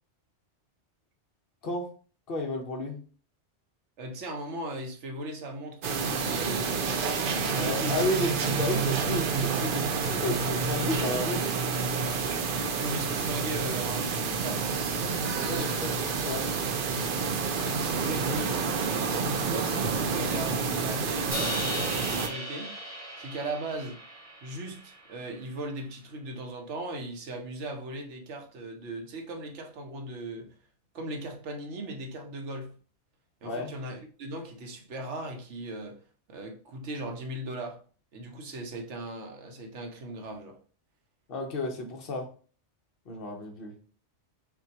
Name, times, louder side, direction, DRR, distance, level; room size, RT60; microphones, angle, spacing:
voice 1, 2.3-3.0 7.5-11.5 15.5-16.5 33.4-33.7 41.3-42.3 43.1-43.7, left 2 dB, 55° left, 1.1 m, -32 dB
voice 2, 4.0-7.0 7.5-8.1 12.8-14.7 15.0-15.7 17.6-18.6 18.9-22.7 23.2-24.0 24.4-30.5 30.9-32.8 33.4-36.0 36.3-37.8 38.1-40.6, right 1 dB, 75° right, 1.1 m, -38 dB
sound 1, 5.8-22.3, right 5 dB, 60° right, 0.6 m, -29 dB
Crash cymbal, 21.3-25.5, equal, 15° right, 1.1 m, -37 dB
5.9 x 2.3 x 2.8 m
omnidirectional pair, 1.2 m